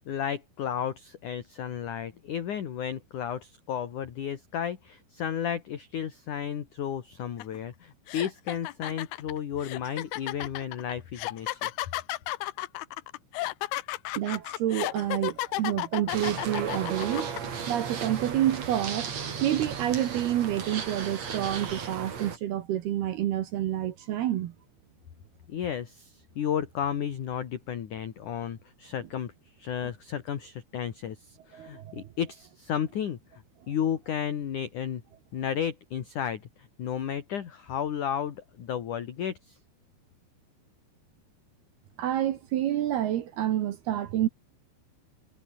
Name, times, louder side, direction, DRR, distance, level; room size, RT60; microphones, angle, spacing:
voice 1, 0.1-11.7 25.5-29.3 29.6-35.0 35.3-39.6, left 9 dB, 50° left, 2.9 m, -33 dB
sound 1, 7.4-7.6 8.1-17.4, left 17 dB, 75° left, 2.3 m, -33 dB
voice 2, 14.2-17.3 17.7-24.5 31.5-32.1 42.0-44.3, right 12 dB, 65° right, 2.9 m, -28 dB
sound 2, 16.1-22.4, right 6 dB, 40° right, 3.5 m, -35 dB
omnidirectional pair, 5.5 m